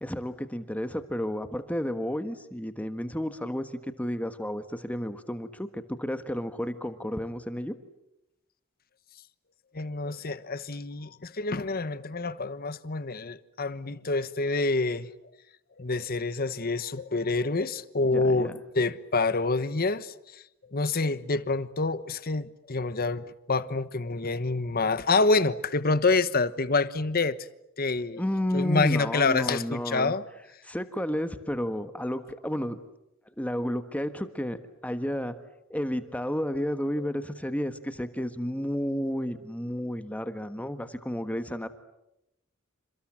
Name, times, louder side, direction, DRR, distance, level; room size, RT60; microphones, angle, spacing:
voice 1, 0.0-7.7 18.0-18.6 28.2-30.1 30.6-32.8 33.3-34.6 34.8-35.3 35.7-41.7, equal, 5° left, 1.4 m, -32 dB
voice 2, 9.7-15.1 15.8-20.4 20.7-27.4 27.8-28.2 28.5-30.2 37.0-37.1, left 3 dB, 45° left, 1.2 m, -27 dB
29.0 x 27.0 x 7.6 m
head